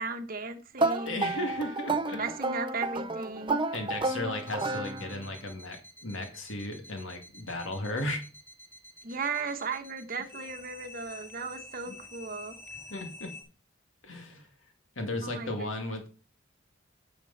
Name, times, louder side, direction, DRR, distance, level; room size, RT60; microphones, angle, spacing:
voice 1, 0.0-1.4 2.1-3.6 9.0-12.6 15.2-15.7, right 4 dB, 50° right, 1.2 m, -36 dB
sound 1, 0.8-5.4, right 3 dB, 25° right, 0.6 m, -31 dB
voice 2, 1.1-2.2 3.7-8.2 11.9-12.0 12.9-13.3 14.0-14.5 15.0-16.1, left 1 dB, 80° left, 2.2 m, -35 dB
sound 2, 4.4-13.4, left 2 dB, 15° left, 2.1 m, -49 dB
9.8 x 6.8 x 4.1 m
head